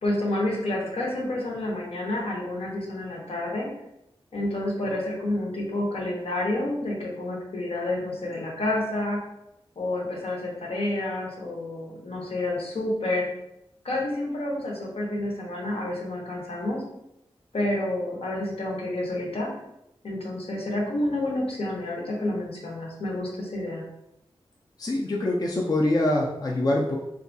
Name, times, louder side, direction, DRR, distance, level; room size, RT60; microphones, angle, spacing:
voice 1, 0.0-3.7 4.3-9.2 9.8-13.3 13.8-16.8 17.5-19.5 20.0-23.8, left 1 dB, 75° left, -2 dB, 0.8 m, -29 dB
voice 2, 24.8-27.0, left 1 dB, 40° left, -2 dB, 0.4 m, -24 dB
2.7 x 2.3 x 2.5 m, 0.83 s
wide cardioid pair, 75°, 10 cm